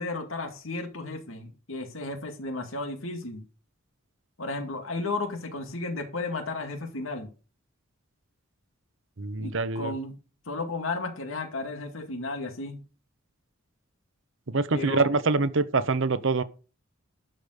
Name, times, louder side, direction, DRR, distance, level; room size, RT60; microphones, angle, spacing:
voice 1, 0.0-3.4 4.4-7.3 9.4-10.2 10.5-12.8 14.7-15.1, left 3 dB, 85° left, 2.2 m, -33 dB
voice 2, 9.2-9.9 14.5-16.4, right 3 dB, 70° right, 0.9 m, -25 dB
12.0 x 5.3 x 6.6 m
head